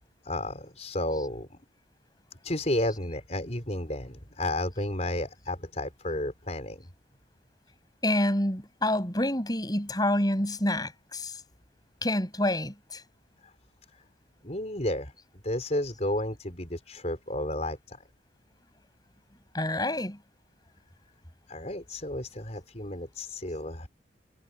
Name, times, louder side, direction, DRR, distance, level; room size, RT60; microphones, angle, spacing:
voice 1, 0.2-1.5 2.4-6.8 13.4-13.5 14.4-15.1 15.4-18.0 21.5-23.9, left 1 dB, 40° left, 4.8 m, -32 dB
voice 2, 8.0-11.3 12.0-13.0 19.5-20.2, left 1 dB, 20° left, 7.6 m, -27 dB
head